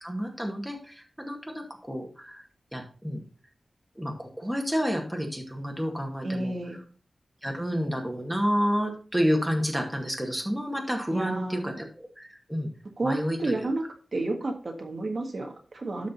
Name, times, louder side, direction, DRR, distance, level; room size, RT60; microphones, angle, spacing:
voice 1, 0.0-2.4 2.7-3.2 4.0-6.6 7.4-12.7 13.0-13.7, equal, 5° right, 1 dB, 2.2 m, -30 dB
voice 2, 6.2-6.8 11.1-11.7 13.0-13.8 14.1-16.1, right 2 dB, 55° right, 3 dB, 1.6 m, -30 dB
12.0 x 5.1 x 4.1 m, 0.39 s
wide cardioid pair, 100°, 0 cm